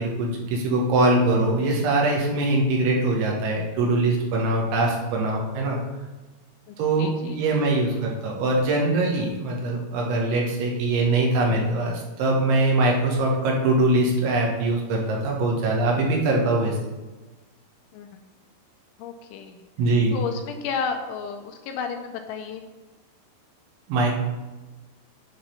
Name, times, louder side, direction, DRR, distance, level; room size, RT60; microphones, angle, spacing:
voice 1, 0.0-5.8 6.8-16.8 19.8-20.2 23.9-24.1, right 2 dB, 75° right, -1 dB, 3.4 m, -22 dB
voice 2, 6.7-7.8 17.9-18.2 19.0-19.7 20.1-22.6, left 6 dB, 80° left, 5 dB, 2.9 m, -33 dB
10.5 x 3.8 x 5.6 m, 1.2 s
omnidirectional pair, 5.7 m